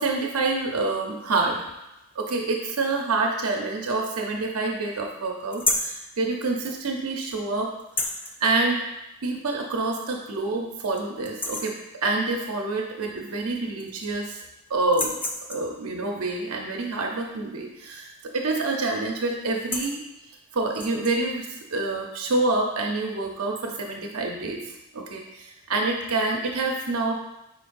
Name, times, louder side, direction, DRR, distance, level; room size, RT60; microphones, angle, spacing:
voice 1, 0.0-1.6 2.1-7.7 8.1-8.8 9.2-11.8 12.0-14.4 14.7-15.2 15.5-20.0 20.5-27.1, right 3 dB, 80° right, 1 dB, 0.7 m, -27 dB
sound 1, 5.5-6.0 7.8-8.3 9.7-9.8 10.3-10.4 10.8-11.0 11.2-11.8 13.2-13.3 13.5-14.3 14.8-15.8 18.1-18.4 18.7-19.0 19.4-20.0 20.7-21.2, left 2 dB, 10° left, 0.4 m, -30 dB
9.2 x 4.2 x 2.6 m, 0.93 s
head